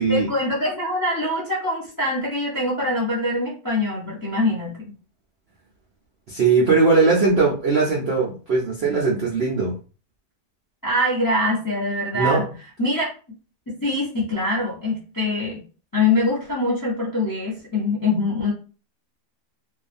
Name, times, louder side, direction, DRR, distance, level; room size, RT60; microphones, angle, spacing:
voice 1, 0.1-4.8 10.8-12.4 12.8-13.1 13.7-15.6 15.9-18.5, left 2 dB, 30° left, -4 dB, 0.4 m, -23 dB
voice 2, 6.3-9.7 12.1-12.4, right 4 dB, 70° right, -3 dB, 0.6 m, -19 dB
2.7 x 2.3 x 2.5 m, 0.36 s
omnidirectional pair, 1.7 m